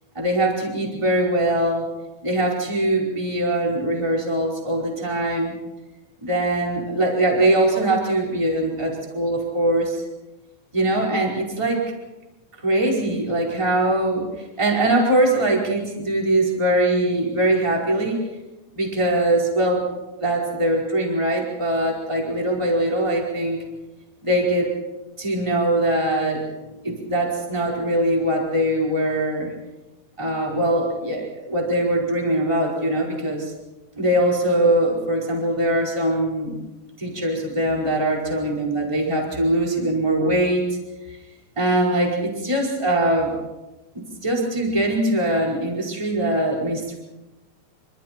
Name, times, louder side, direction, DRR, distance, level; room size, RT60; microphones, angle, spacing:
voice 1, 0.1-1.9 2.2-5.5 6.2-10.0 10.7-12.0 12.6-18.2 18.7-19.9 20.2-23.6 24.2-24.7 25.2-26.5 26.8-29.5 30.2-33.5 34.0-36.6 37.0-40.8 41.1-41.2 41.6-43.4 43.9-46.9, right 1 dB, 5° right, -2 dB, 4.4 m, -22 dB
27.0 x 26.0 x 4.5 m, 1.1 s
omnidirectional pair, 5.2 m